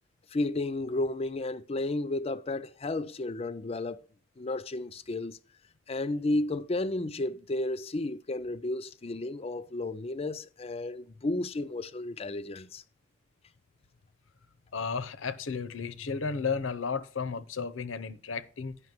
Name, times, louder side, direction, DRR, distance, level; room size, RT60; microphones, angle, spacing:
voice 1, 0.3-4.0 4.4-5.4 5.9-12.8, left 2 dB, 30° left, 0.4 m, -32 dB
voice 2, 14.7-18.8, left 5 dB, 90° left, 0.7 m, -33 dB
9.5 x 5.7 x 5.9 m
head